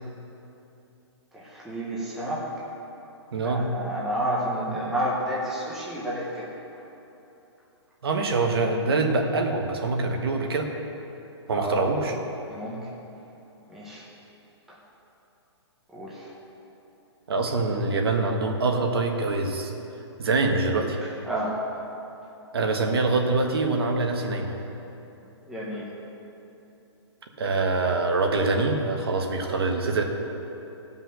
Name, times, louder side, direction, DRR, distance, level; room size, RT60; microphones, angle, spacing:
voice 1, 1.3-2.5 3.4-6.5 11.5-11.8 12.5-12.9 13.7-14.0 14.7-14.8 15.9-16.3 21.2-21.6 25.4-25.9, right 1 dB, ahead, -7 dB, 0.8 m, -30 dB
voice 2, 3.3-3.7 8.0-10.7 11.5-12.1 17.3-19.7 20.2-21.0 22.5-24.5 27.4-30.0, right 3 dB, 60° right, 3 dB, 1.3 m, -24 dB
15.5 x 5.6 x 6.3 m, 2.9 s
hypercardioid pair, 175°, 15 cm